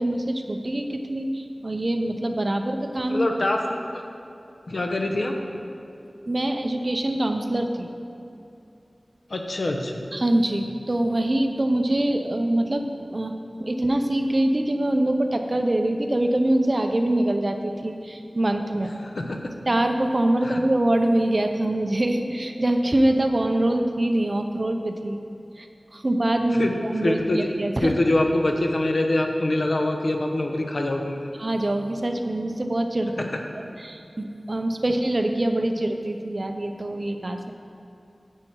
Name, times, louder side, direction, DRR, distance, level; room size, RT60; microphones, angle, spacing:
voice 1, 0.0-3.2 6.3-7.9 10.1-13.3 13.6-18.9 19.7-25.2 25.6-25.7 25.9-27.9 31.4-33.3 33.8-37.5, right 1 dB, 45° right, 5 dB, 0.7 m, -24 dB
voice 2, 3.1-4.0 4.7-5.4 9.3-10.0 19.0-19.4 20.4-20.6 26.5-27.5 27.8-31.2 33.2-33.3, left 1 dB, 75° left, 2 dB, 0.9 m, -24 dB
9.1 x 7.9 x 4.6 m, 2.6 s
wide cardioid pair, 65°, 0 cm